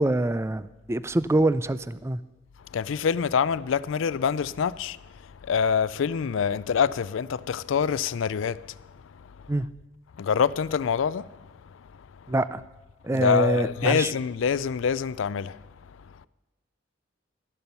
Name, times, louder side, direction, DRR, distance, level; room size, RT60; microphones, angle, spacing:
voice 1, 0.0-2.2 9.5-9.7 12.3-12.6 13.0-14.1, right 2 dB, 15° right, 0.3 m, -25 dB
voice 2, 2.7-5.0 5.4-8.6 10.2-11.3 13.1-15.6, left 7 dB, 80° left, 0.4 m, -25 dB
12.5 x 11.5 x 5.4 m
head